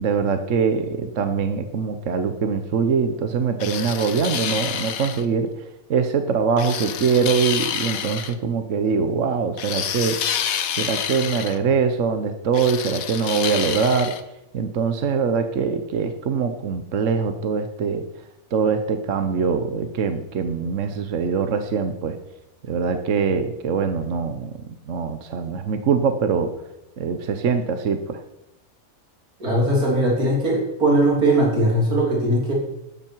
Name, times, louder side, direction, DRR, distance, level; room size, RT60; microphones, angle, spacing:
voice 1, 0.0-5.5 5.9-10.2 10.8-14.1 14.5-18.0 18.5-22.2 22.6-26.5 27.0-28.2, right 5 dB, 60° right, 8 dB, 1.2 m, -23 dB
sound 1, 3.6-5.2 6.6-8.3 9.6-11.6 12.5-14.2, left 8 dB, 75° left, 1.3 m, -28 dB
voice 2, 29.4-32.5, right 1 dB, 90° right, -3 dB, 3.7 m, -19 dB
14.5 x 12.5 x 4.6 m, 0.90 s
omnidirectional pair, 1.5 m